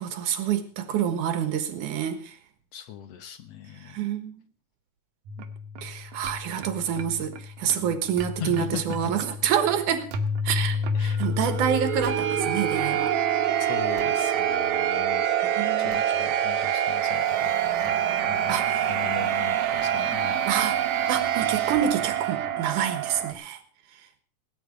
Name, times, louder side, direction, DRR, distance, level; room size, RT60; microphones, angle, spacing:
voice 1, 0.0-2.4 3.8-4.4 5.8-10.1 10.4-13.2 15.4-16.0 18.5-18.9 20.5-20.8 21.1-23.6, right 9 dB, 90° right, 10 dB, 2.9 m, -27 dB
voice 2, 2.7-4.0 7.7-8.0 8.4-8.8 10.9-11.2 13.7-15.2 15.8-17.5 17.8-17.9 18.3-18.5 18.9-20.5, left 9 dB, 65° left, 10 dB, 2.0 m, -38 dB
sound 1, 5.3-23.3, right 7 dB, 75° right, 2.3 m, -27 dB
18.0 x 9.2 x 5.1 m, 0.41 s
omnidirectional pair, 3.5 m